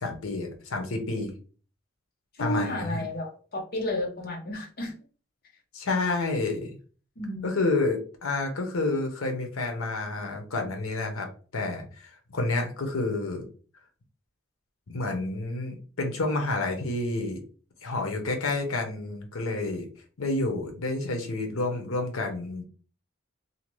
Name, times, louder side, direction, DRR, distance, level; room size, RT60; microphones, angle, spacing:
voice 1, 0.0-1.3 2.4-3.0 5.7-6.7 7.4-11.3 11.5-13.4 14.9-17.4 17.8-19.8 20.2-22.6, left 2 dB, 80° left, 0.8 m, -29 dB
voice 2, 2.4-4.9 7.2-7.7, left 1 dB, 45° left, 0.7 m, -32 dB
2.7 x 2.2 x 3.1 m
head